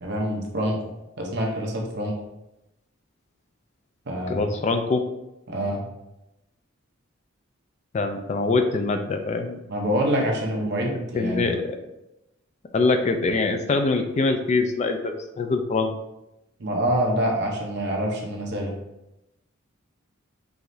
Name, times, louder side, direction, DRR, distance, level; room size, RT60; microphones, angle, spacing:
voice 1, 0.0-0.8 1.2-2.1 4.1-4.4 5.5-5.8 9.7-11.6 16.6-18.7, equal, 55° right, 0 dB, 0.8 m, -26 dB
voice 2, 4.3-5.0 7.9-9.6 10.7-11.8 12.7-15.9, left 3 dB, 35° left, 6 dB, 0.3 m, -24 dB
4.7 x 3.1 x 2.6 m, 0.92 s
head